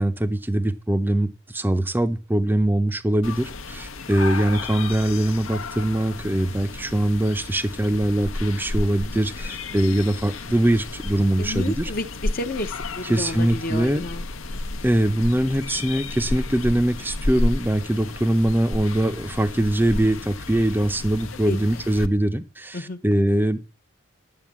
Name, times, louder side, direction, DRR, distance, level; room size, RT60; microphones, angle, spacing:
voice 1, 0.0-11.8 13.1-14.0 14.8-23.6, right 1 dB, 10° right, 0.6 m, -22 dB
sound 1, 3.2-22.1, left 2 dB, 80° left, 0.9 m, -32 dB
voice 2, 11.4-14.2 21.5-21.6 22.7-23.0, left 2 dB, 45° left, 0.8 m, -31 dB
11.0 x 7.8 x 7.4 m
head